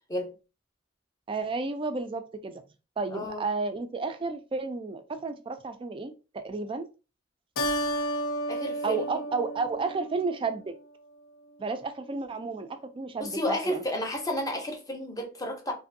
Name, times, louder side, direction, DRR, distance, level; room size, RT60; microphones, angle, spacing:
voice 1, 1.3-2.6 3.0-6.9 8.8-10.7 11.6-13.8, right 4 dB, 25° right, 0.3 m, -32 dB
voice 2, 3.1-3.4 8.5-9.2 13.2-15.7, left 1 dB, 20° left, 0.6 m, -32 dB
Keyboard (musical), 7.6-10.4, equal, 80° left, 0.5 m, -32 dB
2.6 x 2.5 x 2.6 m
head